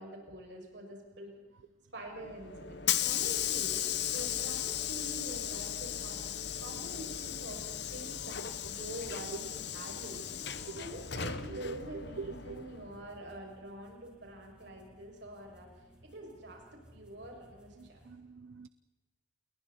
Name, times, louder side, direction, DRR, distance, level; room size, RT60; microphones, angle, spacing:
voice 1, 0.0-1.4 1.9-6.2 6.6-10.2 10.8-15.7 16.0-18.0, right 1 dB, 60° right, 0 dB, 6.8 m, -46 dB
Hiss / Sliding door, 2.2-13.0, left 10 dB, 55° left, 1.0 m, -36 dB
sound 1, 6.1-18.1, equal, 5° right, 3.6 m, -61 dB
voice 2, 12.2-12.6 17.8-18.7, right 5 dB, 85° right, 15 dB, 0.6 m, -44 dB
29.0 x 22.0 x 4.3 m, 1.2 s
head